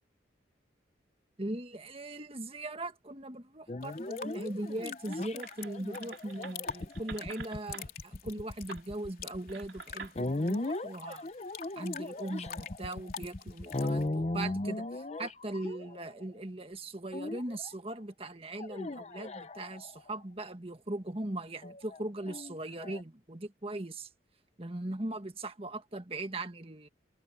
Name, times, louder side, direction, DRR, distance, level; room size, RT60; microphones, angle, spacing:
voice 1, 1.4-11.3 11.7-24.1 24.6-26.9, right 1 dB, 30° right, 1.6 m, -39 dB
sound 1, 3.7-16.3 17.1-17.7 18.6-20.1 21.6-23.0, left 2 dB, 35° left, 0.7 m, -37 dB
sound 2, 3.8-14.1, left 7 dB, 50° left, 3.8 m, -47 dB
sound 3, 5.1-7.9 8.7-8.8 9.5-10.2, right 5 dB, 80° right, 3.2 m, -48 dB
head